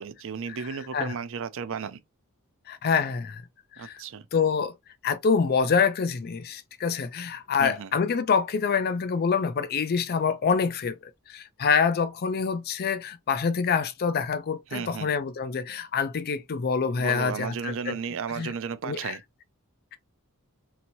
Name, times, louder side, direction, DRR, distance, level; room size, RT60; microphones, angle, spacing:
voice 1, 0.0-2.0 3.8-4.3 7.6-7.9 14.7-15.1 17.0-19.2, right 6 dB, 65° right, 0.5 m, -34 dB
voice 2, 2.7-3.4 3.8-4.0 4.3-4.7 5.0-11.0 11.3-17.9 18.3-18.5 18.8-19.2, left 5 dB, 45° left, 0.4 m, -26 dB
2.9 x 2.8 x 2.6 m
head